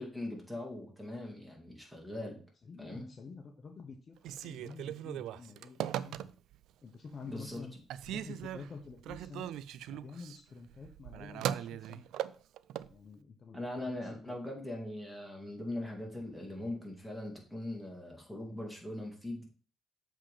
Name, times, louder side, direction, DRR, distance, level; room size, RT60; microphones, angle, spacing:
voice 1, 0.0-2.4 2.8-3.1 7.2-7.7 13.5-19.4, left 1 dB, 5° right, 0 dB, 2.5 m, -41 dB
voice 2, 2.7-6.2 6.8-7.7 8.1-9.5 9.9-12.1 12.9-14.4, left 4 dB, 45° left, 4 dB, 1.0 m, -49 dB
Telephone, 4.2-6.6 7.1-7.6 7.9-12.9, right 11 dB, 85° right, 0.3 m, -39 dB
7.3 x 3.8 x 5.0 m, 0.39 s
cardioid pair, 90°, 0 cm